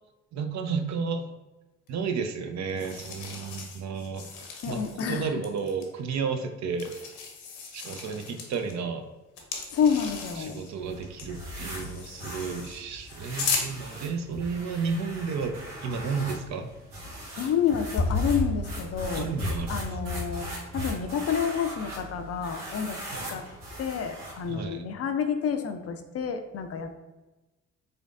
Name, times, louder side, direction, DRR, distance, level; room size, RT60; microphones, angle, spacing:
voice 1, 0.3-1.3 1.9-7.1 7.7-9.1 10.4-16.7 17.3-17.5 19.1-20.0 23.1-23.4 24.5-24.9, right 5 dB, 50° right, 6 dB, 0.5 m, -32 dB
sound 1, 1.9-2.0 2.7-5.2 5.4-5.9 6.8-8.7 9.4-10.7 11.0-13.7 17.0-17.1 17.6-20.4, left 3 dB, 70° left, 0.8 m, -35 dB
voice 2, 4.6-5.4 9.7-10.6 17.4-19.3 19.7-23.0 23.3-23.4 23.8-27.0, left 7 dB, 45° left, 7 dB, 0.5 m, -29 dB
sound 2, 10.7-24.5, equal, 80° right, 1.1 m, -39 dB
3.8 x 3.3 x 2.5 m, 1.1 s
hypercardioid pair, 45°, 35 cm